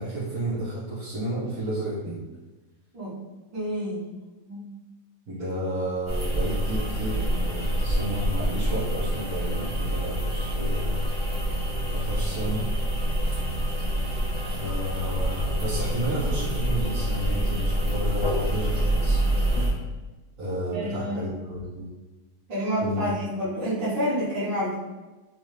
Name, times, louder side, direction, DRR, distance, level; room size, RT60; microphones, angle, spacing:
voice 1, 0.0-2.2 5.3-10.9 11.9-12.7 14.4-19.2 20.4-21.9 22.8-23.1, right 1 dB, 50° right, -12 dB, 1.4 m, -31 dB
voice 2, 3.5-4.0 4.5-4.7 20.7-21.3 22.5-24.7, equal, 85° right, -9 dB, 1.8 m, -28 dB
sound 1, 6.1-19.7, right 1 dB, 20° right, 0.9 m, -26 dB
4.2 x 2.6 x 3.1 m, 1.2 s
omnidirectional pair, 1.9 m